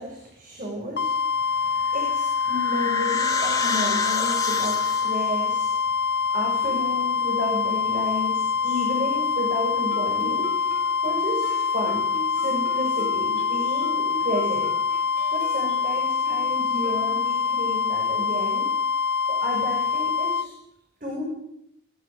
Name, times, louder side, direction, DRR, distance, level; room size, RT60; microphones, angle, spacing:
voice 1, 0.0-5.8 6.3-10.7 11.0-14.7 15.3-18.7 19.3-20.5 21.0-21.2, left 1 dB, 45° right, 0 dB, 7.8 m, -32 dB
sound 1, 1.0-20.5, left 6 dB, 60° left, 1.4 m, -25 dB
sound 2, 1.9-5.3, left 4 dB, 20° left, 3.4 m, -30 dB
Guitar, 9.9-17.6, equal, 45° left, 5.1 m, -42 dB
25.5 x 22.0 x 8.8 m, 0.75 s
head